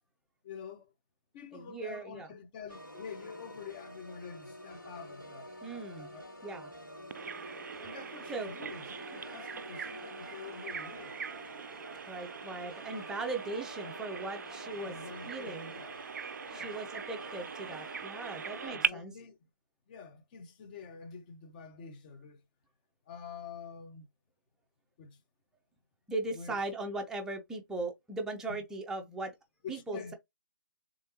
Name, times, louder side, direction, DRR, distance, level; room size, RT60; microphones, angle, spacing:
voice 1, 0.4-0.9 1.3-5.5 6.1-6.2 7.8-11.2 14.8-15.9 16.5-16.8 18.6-19.4 19.9-22.4 23.1-24.1 25.0-25.2 26.3-26.6 28.5-28.6 29.6-30.1, left 6 dB, 25° left, 0.8 m, -47 dB
voice 2, 1.5-2.3 5.6-6.1 6.4-6.7 8.3-8.5 12.1-14.9 15.3-15.7 16.5-19.1 26.1-29.3 29.7-30.1, right 2 dB, 5° right, 0.6 m, -38 dB
Organ, 2.7-18.7, equal, 90° left, 2.5 m, -48 dB
Bird vocalization bird call bird song, 7.1-18.9, right 6 dB, 55° right, 0.4 m, -41 dB
3.7 x 3.3 x 2.8 m
figure-of-eight pair, 140°, 11 cm